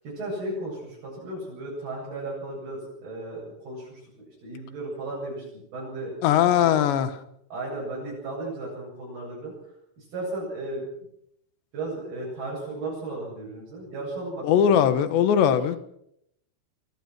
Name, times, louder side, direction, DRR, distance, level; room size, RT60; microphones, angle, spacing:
voice 1, 0.0-4.0 4.4-6.1 6.6-7.1 7.5-9.5 10.0-10.9 11.7-14.9 15.4-15.5, right 2 dB, 55° right, 10.0 m, -35 dB
voice 2, 6.2-7.1 14.4-15.8, left 9 dB, 75° left, 3.6 m, -20 dB
26.0 x 21.5 x 6.1 m
omnidirectional pair, 5.2 m